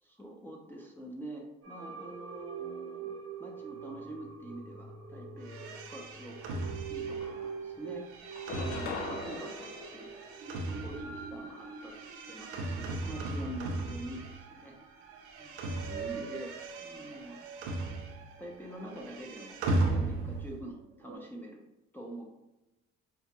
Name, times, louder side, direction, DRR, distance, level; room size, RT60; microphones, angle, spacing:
voice 1, 0.0-3.1 3.4-6.6 6.9-8.0 8.5-10.1 10.8-14.8 15.4-17.4 18.4-21.7 21.9-22.3, right 1 dB, 5° left, -2 dB, 0.7 m, -45 dB
sound 1, 1.6-21.2, right 5 dB, 55° right, 0.7 m, -45 dB
sound 2, 5.4-14.7 15.0-18.4 18.7-20.6, right 2 dB, 90° right, 0.5 m, -37 dB
sound 3, 6.7-6.8 7.1-7.9 8.3-10.9, left 4 dB, 80° left, 0.5 m, -42 dB
4.8 x 2.1 x 3.0 m, 1.0 s
supercardioid pair, 60°, 29 cm